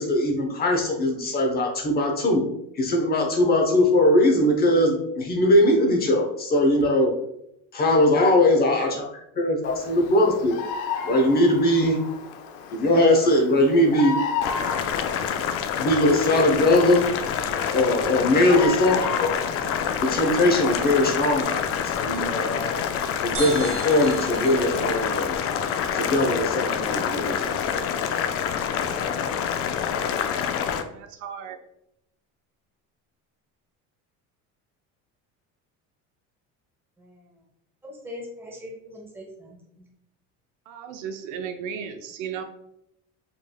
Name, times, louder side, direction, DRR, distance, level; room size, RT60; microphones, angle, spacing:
voice 1, 0.0-2.4 2.7-7.1 7.7-10.6 11.0-12.0 12.7-14.2 15.8-17.1 17.7-19.4 20.0-22.8 23.2-25.3 25.9-27.9, left 1 dB, 30° left, 1 dB, 0.8 m, -21 dB
Bird vocalization bird call bird song, 9.6-21.4, left 6 dB, 90° left, 0.6 m, -35 dB
Boiling, 14.4-30.8, left 8 dB, 45° left, 0.4 m, -27 dB
sound 1, 23.3-26.9, right 4 dB, 45° right, 1.3 m, -38 dB
voice 2, 30.6-31.6 40.7-42.4, right 7 dB, 70° right, 6 dB, 0.6 m, -35 dB
voice 3, 37.0-37.4 37.8-39.8, left 1 dB, 5° right, -2 dB, 1.2 m, -41 dB
5.2 x 3.3 x 2.2 m, 0.79 s
cardioid pair, 135°, 31 cm